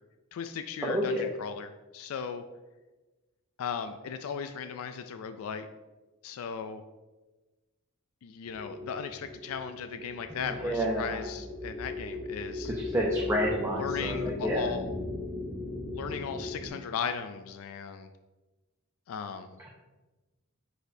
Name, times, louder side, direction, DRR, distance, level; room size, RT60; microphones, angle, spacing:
voice 1, 0.3-2.4 3.6-5.7 6.2-6.8 8.2-12.7 13.7-14.9 15.9-18.1 19.1-19.6, left 7 dB, 80° left, 9 dB, 0.3 m, -37 dB
voice 2, 0.8-1.3 10.4-11.2 12.7-14.7, equal, 10° right, -2 dB, 0.6 m, -30 dB
sound 1, 8.5-16.7, left 3 dB, 40° left, 2.0 m, -37 dB
10.0 x 4.1 x 2.7 m, 1.2 s
head